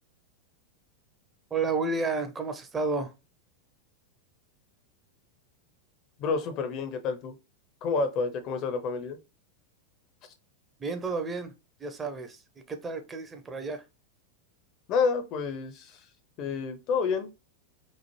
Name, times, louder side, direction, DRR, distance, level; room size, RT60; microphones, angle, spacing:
voice 1, 1.5-3.1 10.8-11.5 11.8-12.4 12.7-13.8, right 3 dB, 20° right, 0.5 m, -31 dB
voice 2, 6.2-7.3 7.8-9.2 14.9-16.0 16.4-17.3, left 5 dB, 40° left, 0.5 m, -29 dB
3.0 x 2.0 x 2.8 m
figure-of-eight pair, 90°, 0 cm